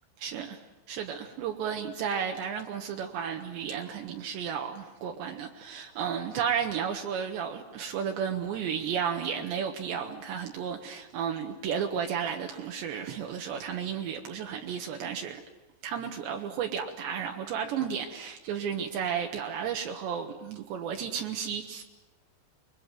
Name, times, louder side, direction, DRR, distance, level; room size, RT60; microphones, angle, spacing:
voice 1, 0.2-15.4 15.8-21.8, right 7 dB, 75° right, 3.5 m, -33 dB
26.5 x 22.5 x 9.3 m
omnidirectional pair, 5.4 m